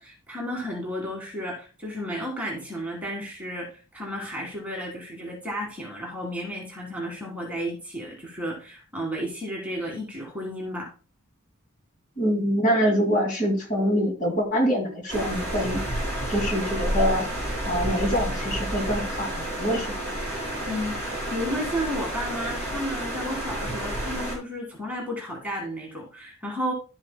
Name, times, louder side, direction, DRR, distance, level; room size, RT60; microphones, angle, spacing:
voice 1, 0.0-10.9 20.6-26.7, equal, 5° right, -1 dB, 1.7 m, -33 dB
voice 2, 12.2-15.8 16.3-17.3 17.7-20.0, equal, 35° left, 1 dB, 2.2 m, -25 dB
sound 1, 15.1-24.3, right 1 dB, 10° left, 4.0 m, -30 dB
11.5 x 7.3 x 2.2 m, 0.35 s
head